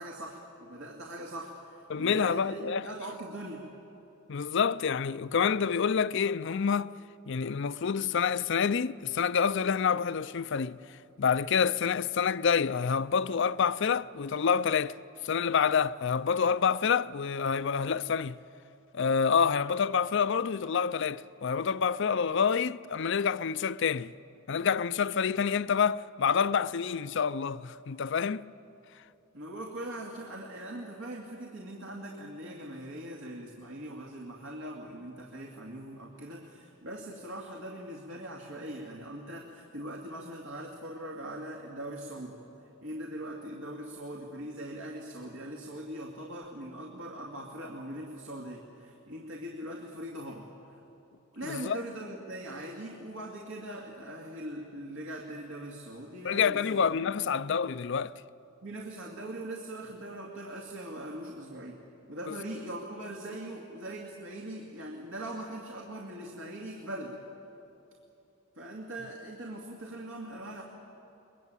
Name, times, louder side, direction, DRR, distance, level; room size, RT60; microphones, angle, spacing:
voice 1, 0.0-3.6 29.3-50.8 51.3-57.3 58.6-61.8 62.1-67.2 68.6-70.6, right 1 dB, 80° right, 2.2 m, -41 dB
voice 2, 1.9-2.8 4.3-6.9 7.3-15.0 15.2-18.4 18.9-24.1 24.5-28.5 51.4-51.8 56.2-58.2 62.3-62.4, left 6 dB, 60° left, 0.5 m, -28 dB
22.5 x 22.5 x 9.0 m
head